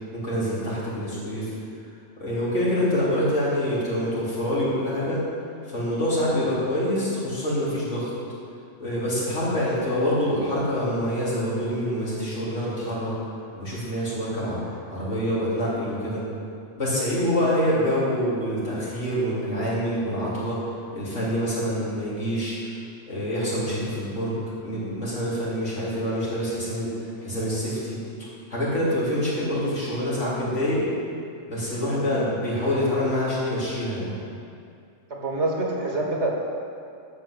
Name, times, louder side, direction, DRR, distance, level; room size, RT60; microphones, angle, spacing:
voice 1, 0.1-1.5 2.2-5.2 5.7-8.1 8.8-13.1 13.6-14.6 14.9-16.2 16.8-20.6 20.9-22.6 23.1-24.4 24.6-26.9 27.2-30.8 31.5-34.1, equal, 80° left, -8 dB, 3.8 m, -26 dB
voice 2, 35.1-36.3, right 2 dB, 65° right, -1 dB, 2.1 m, -26 dB
12.0 x 6.1 x 8.0 m, 2.4 s
omnidirectional pair, 1.2 m